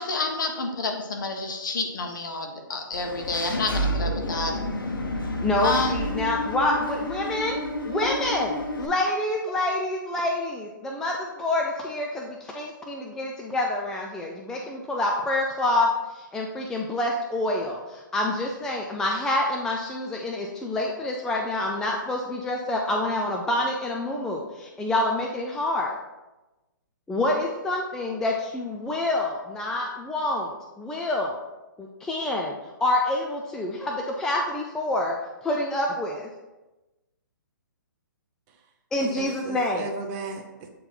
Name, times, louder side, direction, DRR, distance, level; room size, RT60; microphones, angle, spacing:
voice 1, 0.0-4.6 5.6-5.9 8.0-8.1, left 3 dB, 65° left, 3 dB, 1.3 m, -29 dB
Engine / Mechanisms, 2.9-8.9, equal, 85° left, 1.2 m, -30 dB
voice 2, 5.4-25.9 27.1-31.4 31.8-35.2 35.4-36.3 38.9-39.8, left 1 dB, 5° left, 0 dB, 0.4 m, -27 dB
voice 3, 39.0-40.7, right 3 dB, 30° right, 3 dB, 0.8 m, -36 dB
8.1 x 3.9 x 4.3 m, 1.1 s
hypercardioid pair, 150°, 11 cm